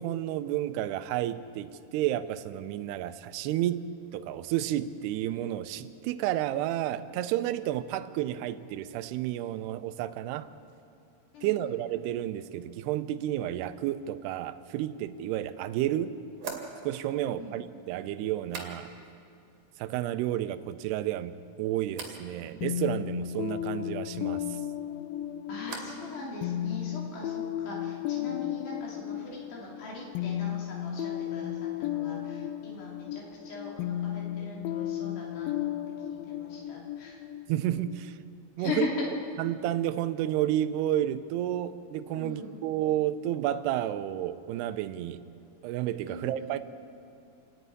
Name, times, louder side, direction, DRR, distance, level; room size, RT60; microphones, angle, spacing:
voice 1, 0.0-10.5 11.4-16.2 16.8-18.9 19.8-21.3 21.6-24.6 37.5-38.1 38.6-38.9 39.4-45.2 45.6-46.6, right 12 dB, 80° right, 11 dB, 2.6 m, -31 dB
voice 2, 11.3-11.7 17.1-17.6 25.5-35.8 36.1-37.2 38.6-39.1 42.1-42.5 46.1-46.5, left 3 dB, 70° left, -3 dB, 5.0 m, -40 dB
sound 1, 16.4-19.2 19.5-20.1 20.4-21.0 21.9-22.2 24.7-26.1 26.4-27.0, right 5 dB, 55° right, 3.3 m, -45 dB
sound 2, 22.6-38.2, left 11 dB, 90° left, 2.1 m, -34 dB
28.0 x 9.8 x 9.4 m, 2.5 s
omnidirectional pair, 4.9 m